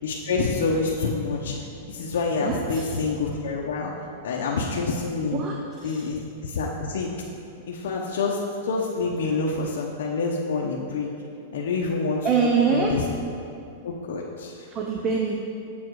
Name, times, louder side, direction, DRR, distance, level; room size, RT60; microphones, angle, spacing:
voice 1, 0.0-1.6 1.9-3.9 4.2-5.4 5.8-7.1 7.7-11.1 11.5-12.3 12.7-13.0 13.8-14.7, left 4 dB, 75° left, -3 dB, 0.9 m, -27 dB
voice 2, 2.4-2.9 5.3-6.1 7.5-7.6 11.5-11.6 12.2-13.0 14.7-15.3, right 5 dB, 25° right, 0 dB, 0.7 m, -25 dB
7.8 x 7.3 x 4.7 m, 2.6 s
supercardioid pair, 145°, 0 cm